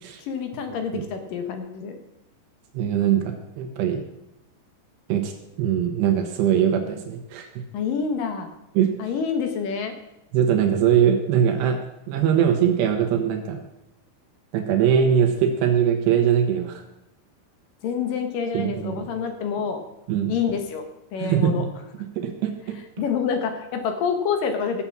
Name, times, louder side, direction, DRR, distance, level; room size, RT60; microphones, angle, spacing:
voice 1, 0.3-2.0 7.7-8.5 9.0-10.0 17.8-19.8 20.3-20.8 21.1-21.6 23.0-24.8, left 6 dB, 65° left, 6 dB, 2.7 m, -27 dB
voice 2, 2.7-4.0 5.1-5.3 5.6-7.5 8.7-9.1 10.3-11.8 12.1-13.6 14.5-16.8 18.5-19.1 20.1-20.3 21.2-21.6 22.2-22.8, right 9 dB, 80° right, 5 dB, 3.3 m, -21 dB
15.0 x 7.1 x 7.3 m, 0.89 s
omnidirectional pair, 4.9 m